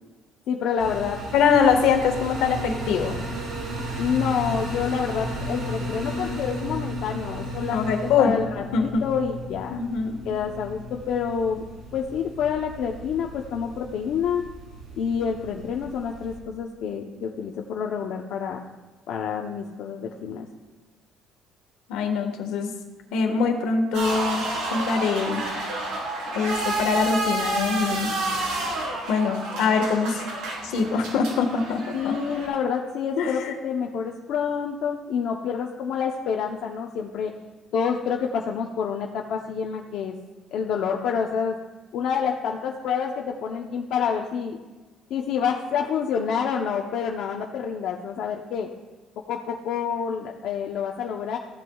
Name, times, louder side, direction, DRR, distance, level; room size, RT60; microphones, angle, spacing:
voice 1, 0.5-1.2 4.0-9.8 10.2-11.6 11.9-14.4 14.9-18.6 19.1-20.5 31.9-37.3 37.7-40.2 40.5-41.6 41.9-44.6 45.1-48.7 49.3-51.4, left 7 dB, 60° left, 0 dB, 0.7 m, -28 dB
sound 1, 0.8-16.4, equal, 60° right, 3.1 m, -34 dB
voice 2, 1.3-3.1 7.7-8.4 8.7-9.0 9.7-10.2 21.9-22.7 23.1-25.4 26.3-28.1 29.1-30.2 30.6-32.2 33.2-33.5, left 5 dB, 85° left, 4 dB, 1.5 m, -23 dB
sound 2, 23.9-32.5, right 2 dB, 85° right, 3.7 m, -29 dB
14.5 x 11.0 x 2.3 m, 1.3 s
cardioid pair, 155°, 0 cm